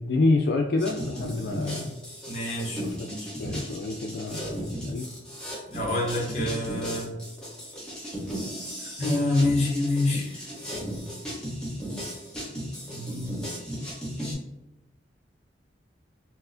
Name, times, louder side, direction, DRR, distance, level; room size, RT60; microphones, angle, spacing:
voice 1, 0.0-2.0 2.8-3.1 3.4-5.1, left 2 dB, 65° left, 2 dB, 0.3 m, -27 dB
sound 1, 0.8-14.3, equal, 5° left, 0.9 m, -36 dB
voice 2, 2.3-3.3 5.7-7.1 8.8-10.5 12.9-13.3, left 2 dB, 35° left, -1 dB, 0.9 m, -27 dB
4.4 x 2.1 x 2.5 m, 0.98 s
head